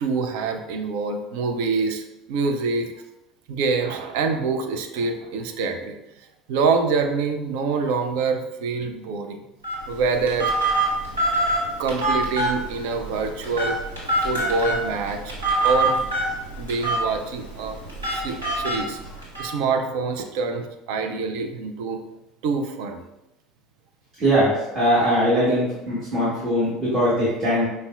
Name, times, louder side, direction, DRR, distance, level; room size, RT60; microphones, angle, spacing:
voice 1, 0.0-2.9 3.5-6.0 6.5-9.4 9.9-10.5 11.8-13.8 14.2-15.3 15.6-16.1 16.6-17.8 18.1-19.0 19.4-22.0 22.4-23.0, right 4 dB, 60° right, 5 dB, 0.4 m, -25 dB
Telephone, 9.6-19.5, right 2 dB, 85° right, 1.1 m, -25 dB
voice 2, 24.2-27.6, equal, 30° right, -10 dB, 1.3 m, -21 dB
5.3 x 2.1 x 2.4 m, 0.91 s
figure-of-eight pair, 65°, 0 cm